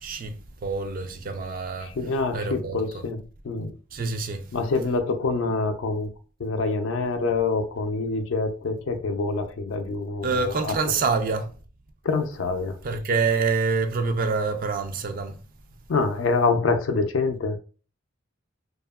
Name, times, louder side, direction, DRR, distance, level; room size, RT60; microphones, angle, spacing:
voice 1, 0.0-1.9 2.3-3.1 3.9-4.5 10.2-11.5 12.8-15.4, right 4 dB, 45° right, 0.4 m, -26 dB
voice 2, 1.8-3.2 3.4-3.7 4.5-6.1 6.4-10.3 10.6-10.7 12.0-12.8 15.9-17.6, left 3 dB, 80° left, 0.4 m, -25 dB
2.7 x 2.3 x 2.3 m
head